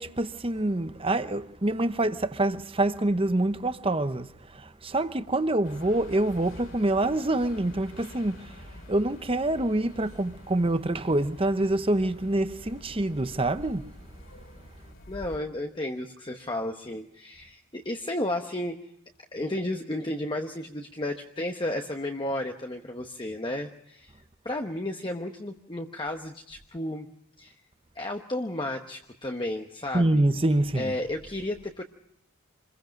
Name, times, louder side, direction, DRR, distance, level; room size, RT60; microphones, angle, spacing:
voice 1, 0.0-8.6 8.9-13.8 29.9-30.9, right 1 dB, 25° right, 0.8 m, -26 dB
sound 1, 5.6-15.4, left 1 dB, 55° left, 3.1 m, -47 dB
voice 2, 15.1-18.8 19.3-24.2 24.4-27.1 27.4-27.6 27.9-30.2 30.7-31.8, left 1 dB, 20° left, 1.0 m, -33 dB
27.0 x 22.0 x 5.2 m
head